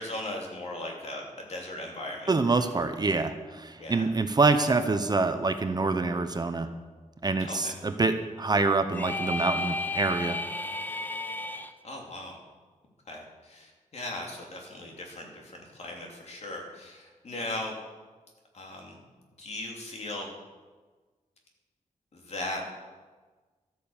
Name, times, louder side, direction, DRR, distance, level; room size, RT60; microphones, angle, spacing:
voice 1, 0.0-2.6 3.8-4.1 7.4-7.6 11.8-12.4 13.1-17.7 18.5-19.0 19.4-20.3 22.1-22.6, left 1 dB, 55° left, 0 dB, 3.0 m, -38 dB
voice 2, 2.3-6.7 7.2-10.4, right 3 dB, 30° right, 8 dB, 0.8 m, -26 dB
sound 1, 8.9-11.7, left 2 dB, 15° left, 0.7 m, -33 dB
13.0 x 9.3 x 7.2 m, 1.3 s
wide cardioid pair, 145°, 13 cm